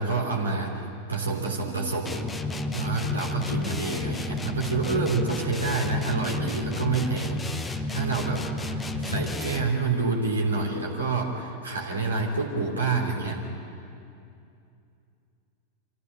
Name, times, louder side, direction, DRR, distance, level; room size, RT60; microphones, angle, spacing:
voice 1, 0.0-2.2 2.7-8.4 8.7-13.4, right 4 dB, 75° right, 0 dB, 3.2 m, -28 dB
sound 1, 2.1-9.8, left 2 dB, 10° left, 1.1 m, -31 dB
26.0 x 15.0 x 8.8 m, 2.5 s
figure-of-eight pair, 90°, 0 cm